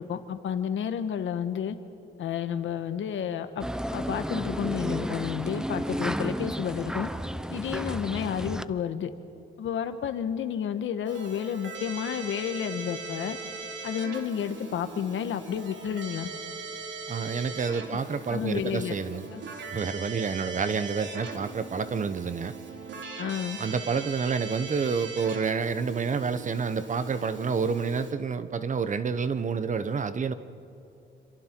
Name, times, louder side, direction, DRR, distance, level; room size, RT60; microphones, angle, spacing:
voice 1, 0.0-1.8 2.2-3.7 3.9-7.1 7.5-9.1 9.6-13.4 13.8-16.3 18.3-18.9 19.3-19.4 23.2-23.6, left 8 dB, 75° left, 9 dB, 1.3 m, -31 dB
sound 1, 3.6-8.6, right 1 dB, 5° right, 0.6 m, -32 dB
Keyboard (musical), 11.0-28.1, right 4 dB, 65° right, 2.9 m, -40 dB
voice 2, 17.1-19.3 19.7-22.5 23.6-30.3, right 5 dB, 40° right, 12 dB, 1.0 m, -29 dB
27.0 x 26.5 x 4.6 m, 2.9 s
cardioid pair, 110°, 20 cm